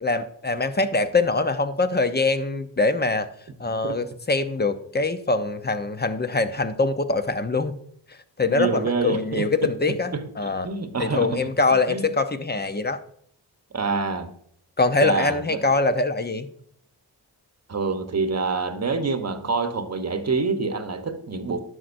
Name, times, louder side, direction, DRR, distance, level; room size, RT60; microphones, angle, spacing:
voice 1, 0.0-3.3 3.6-7.8 8.4-10.7 11.0-13.0 14.8-16.5, left 3 dB, 25° left, 0.7 m, -23 dB
voice 2, 8.5-9.7 10.1-11.5 11.9-12.1 13.7-14.3 15.0-15.6 17.7-21.6, right 4 dB, 40° right, 1.0 m, -27 dB
11.0 x 6.2 x 2.6 m
supercardioid pair, 40°, 42 cm